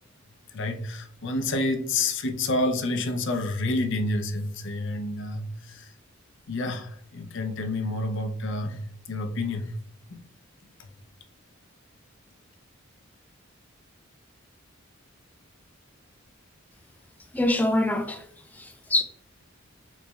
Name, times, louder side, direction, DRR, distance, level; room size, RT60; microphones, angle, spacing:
voice 1, 0.5-5.9 6.5-9.7 10.1-10.2 10.8-10.9, left 2 dB, 60° left, 0.5 m, -29 dB
voice 2, 17.3-18.2 18.5-19.0, left 1 dB, 10° left, 0.3 m, -24 dB
3.9 x 3.1 x 2.3 m
head